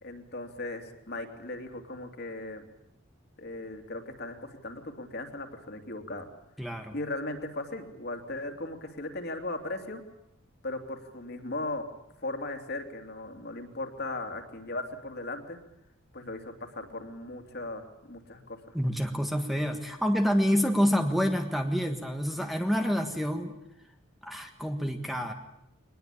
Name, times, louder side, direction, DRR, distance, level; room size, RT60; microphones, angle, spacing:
voice 1, 0.0-2.7 3.4-6.3 6.9-10.0 10.6-11.8 12.2-15.6 16.1-18.7, left 2 dB, 50° left, 5 dB, 3.0 m, -37 dB
voice 2, 6.6-6.9 18.7-23.5 24.2-25.3, equal, ahead, 5 dB, 1.5 m, -27 dB
23.5 x 20.0 x 8.7 m, 0.81 s
head